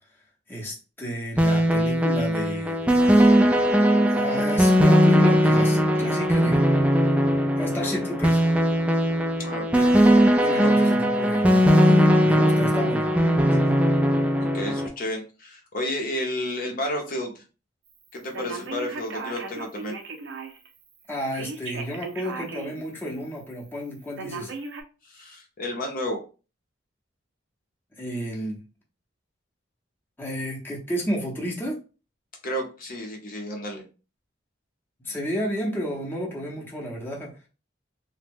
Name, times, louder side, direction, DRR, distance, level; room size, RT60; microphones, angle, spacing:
voice 1, 0.5-2.8 4.1-6.7 7.6-8.4 10.4-13.1 13.5-13.8 21.1-24.5 28.0-28.6 30.2-31.8 35.0-37.3, equal, 10° left, -3 dB, 0.7 m, -31 dB
sound 1, 1.4-14.9, equal, 5° right, 0.3 m, -19 dB
voice 2, 9.4-9.9 10.6-10.7 14.5-17.4 18.1-20.0 25.0-26.2 32.4-33.8, left 1 dB, 45° left, 2 dB, 0.7 m, -31 dB
Telephone, 18.3-20.7 21.3-22.8 23.2-23.3 24.2-24.8, right 4 dB, 70° right, 0.6 m, -36 dB
2.9 x 2.1 x 3.4 m, 0.33 s
head